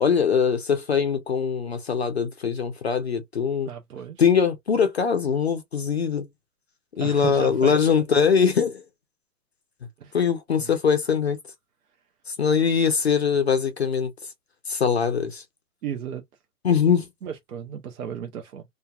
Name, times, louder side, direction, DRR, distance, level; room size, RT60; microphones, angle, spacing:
voice 1, 0.0-3.7 4.2-6.3 7.0-8.8 10.1-11.4 12.3-14.1 14.7-15.4 16.6-17.1, left 6 dB, 45° left, 0.4 m, -22 dB
voice 2, 3.7-4.2 7.0-7.7 10.0-10.2 10.6-10.7 15.8-16.2 17.2-18.6, right 8 dB, 60° right, 0.6 m, -34 dB
2.8 x 2.2 x 2.3 m
hypercardioid pair, 160°, 49 cm